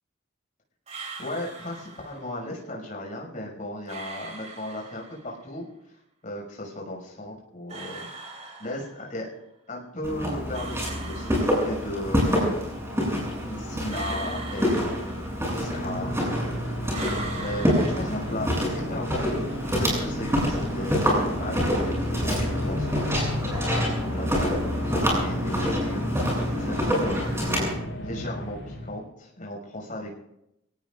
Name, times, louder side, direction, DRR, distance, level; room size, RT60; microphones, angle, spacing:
sound 1, 0.9-2.3 3.9-5.4 7.7-9.2 10.5-12.1 13.9-15.6 16.9-18.7, right 4 dB, 35° right, 3.3 m, -41 dB
voice 1, 1.2-5.7 6.2-8.1 8.6-9.3 9.7-12.5 13.4-16.5 16.8-16.9 17.4-19.4 19.6-23.6 24.0-26.2 26.6-30.2, left 1 dB, 40° left, -1 dB, 6.3 m, -36 dB
Walk footsteps, 10.0-27.7, equal, 15° right, 7.7 m, -27 dB
sound 2, 15.2-29.1, equal, 90° left, 6.9 m, -35 dB
29.0 x 18.0 x 2.6 m, 0.84 s
head